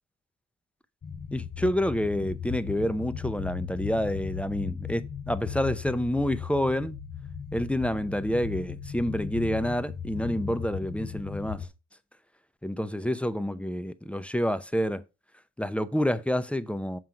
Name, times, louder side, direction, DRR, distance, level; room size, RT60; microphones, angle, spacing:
sound 1, 1.0-11.7, left 7 dB, 30° left, 0.9 m, -37 dB
voice 1, 1.3-7.0 7.5-11.7 12.6-15.0 15.6-17.0, equal, 5° left, 0.6 m, -28 dB
7.6 x 3.7 x 5.8 m
cardioid pair, 90°, 30 cm